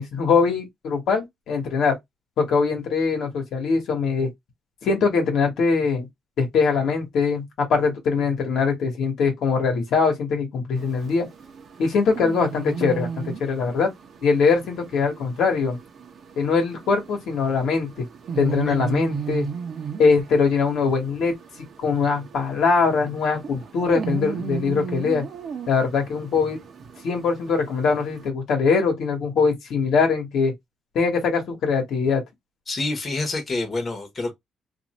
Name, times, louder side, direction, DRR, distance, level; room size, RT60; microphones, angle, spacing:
voice 1, 0.0-1.9 2.4-4.3 4.8-6.1 6.4-7.4 7.7-11.3 11.8-13.9 14.2-15.8 16.4-18.0 18.4-19.5 20.0-21.3 21.8-25.2 25.7-26.6 27.0-30.5 30.9-32.2, left 5 dB, 75° left, 1.3 m, -22 dB
sound 1, 10.7-28.3, right 6 dB, 55° right, 0.7 m, -35 dB
voice 2, 32.7-34.3, left 2 dB, 35° left, 1.2 m, -28 dB
2.6 x 2.6 x 3.0 m
cardioid pair, 90°, 0 cm